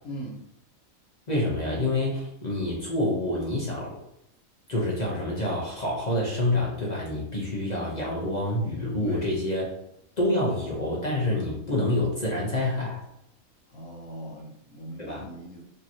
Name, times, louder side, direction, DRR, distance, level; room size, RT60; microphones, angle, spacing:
voice 1, 0.0-0.4 9.0-9.3 13.7-15.6, equal, 75° left, -1 dB, 1.4 m, -40 dB
voice 2, 1.3-4.0 4.7-9.7 10.2-13.0 15.0-15.2, left 1 dB, 35° left, -4 dB, 0.8 m, -27 dB
5.2 x 3.0 x 2.8 m, 0.81 s
omnidirectional pair, 1.5 m